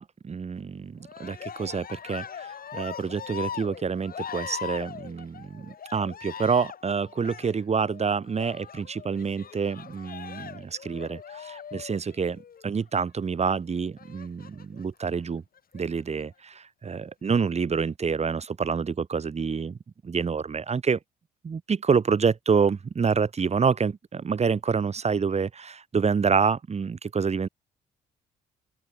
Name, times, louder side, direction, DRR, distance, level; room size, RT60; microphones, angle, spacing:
voice 1, 0.0-15.4 15.7-19.8 20.0-21.0 21.4-27.5, right 5 dB, 35° right, 1.6 m, -27 dB
Cheering, 1.0-12.7 14.0-14.8 15.6-16.2, left 7 dB, 50° left, 4.3 m, -41 dB
open air
hypercardioid pair, 50°, 20 cm